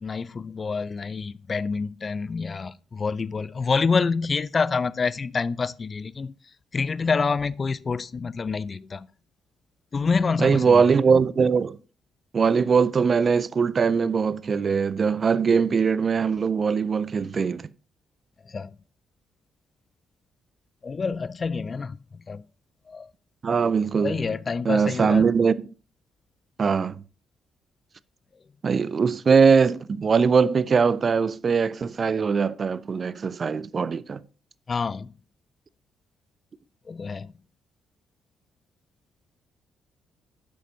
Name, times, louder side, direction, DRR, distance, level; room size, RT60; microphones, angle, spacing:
voice 1, 0.0-6.3 6.7-9.1 9.9-10.8 18.5-18.7 20.8-22.0 22.3-22.4 22.9-23.1 24.0-25.3 34.7-35.1 36.9-37.3, left 4 dB, 40° left, 0.3 m, -27 dB
voice 2, 10.4-11.8 12.3-17.6 23.4-24.2 24.7-25.6 26.6-27.0 28.6-34.2, right 5 dB, 45° right, 0.4 m, -21 dB
10.0 x 6.6 x 2.7 m
hypercardioid pair, 45°, 0 cm